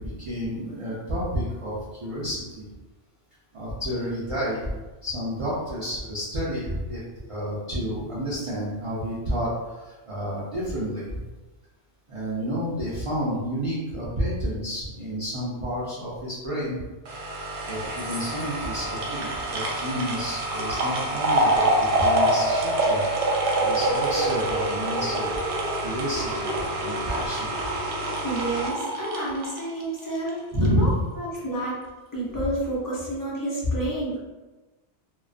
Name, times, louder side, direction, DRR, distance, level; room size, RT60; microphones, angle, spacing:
voice 1, 0.0-2.7 3.5-4.7 5.0-7.0 7.3-11.2 12.1-16.8 17.7-23.0 23.6-25.3 25.8-26.5 26.8-27.5 30.5-31.0, equal, 40° right, -9 dB, 0.5 m, -30 dB
sound 1, 17.1-30.3 30.6-30.7, right 1 dB, 80° right, 0.9 m, -26 dB
voice 2, 28.2-30.9 31.2-31.8 32.1-34.2, right 1 dB, 25° left, -7 dB, 0.4 m, -29 dB
2.4 x 2.2 x 2.4 m, 1.2 s
omnidirectional pair, 1.2 m